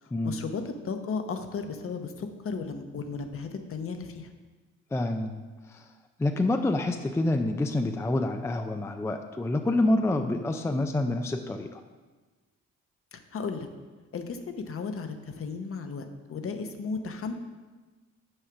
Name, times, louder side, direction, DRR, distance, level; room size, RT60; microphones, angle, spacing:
voice 1, 0.0-4.3 10.6-10.9 13.1-13.7 14.1-17.3, left 5 dB, 45° left, 7 dB, 0.8 m, -35 dB
voice 2, 4.9-5.4 5.7-5.9 6.2-11.8, left 2 dB, 10° left, 6 dB, 0.4 m, -27 dB
6.4 x 4.9 x 5.8 m, 1.3 s
cardioid pair, 90°, 30 cm